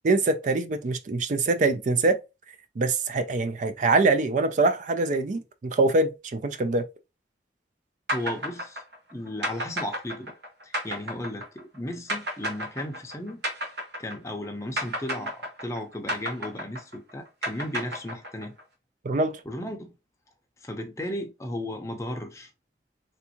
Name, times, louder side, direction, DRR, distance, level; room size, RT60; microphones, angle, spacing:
voice 1, 0.0-2.2 2.8-6.9 19.0-19.4, right 3 dB, 45° right, 0.4 m, -24 dB
voice 2, 8.1-8.8 9.1-10.3 10.6-13.4 14.0-18.6 19.5-19.9 20.6-22.5, left 1 dB, 15° left, 0.6 m, -35 dB
sound 1, 8.1-14.5 14.8-18.6, equal, 70° right, 1.0 m, -32 dB
3.5 x 2.6 x 2.8 m
head